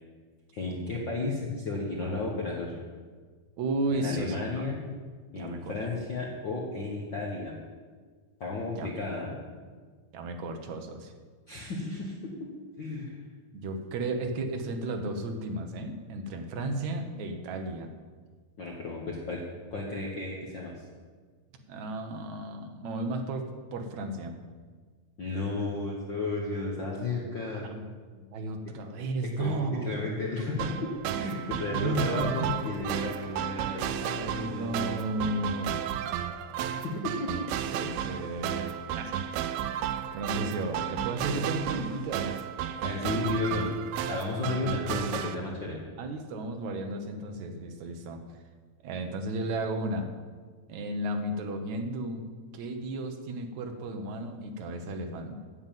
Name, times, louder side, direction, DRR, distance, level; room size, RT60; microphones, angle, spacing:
voice 1, 0.5-2.7 3.9-4.8 5.3-7.5 8.4-9.4 11.5-12.3 12.8-13.2 18.6-19.4 19.7-20.8 25.2-27.7 29.4-34.7 36.6-37.9 41.3-41.4 42.8-43.7 44.0-45.8, left 3 dB, 60° left, -2 dB, 1.2 m, -33 dB
voice 2, 3.6-4.6 5.4-5.7 8.8-8.9 10.1-11.1 13.5-17.9 21.7-24.4 27.6-27.9 28.1-30.2 31.7-32.5 34.2-35.7 37.6-39.2 40.1-42.3 46.0-48.2 48.8-50.1 50.7-52.2 52.5-55.3, right 2 dB, 65° right, 5 dB, 2.0 m, -33 dB
sound 1, 30.6-45.4, right 10 dB, 85° right, 2.5 m, -33 dB
9.8 x 7.3 x 9.1 m, 1.5 s
omnidirectional pair, 4.2 m